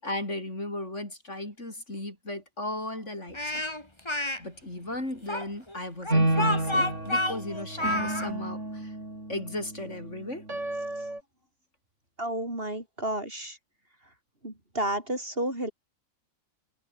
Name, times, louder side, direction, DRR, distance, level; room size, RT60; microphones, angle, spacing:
voice 1, 0.0-3.6 4.4-8.9 9.3-10.5, left 1 dB, 55° left, 7.4 m, -36 dB
Speech, 3.3-4.4 5.3-8.3, left 1 dB, 20° left, 3.5 m, -29 dB
sound 1, 6.1-11.2, right 1 dB, 60° right, 7.2 m, -30 dB
voice 2, 12.2-13.6 14.4-15.7, right 1 dB, 40° right, 7.1 m, -31 dB
omnidirectional pair, 1.4 m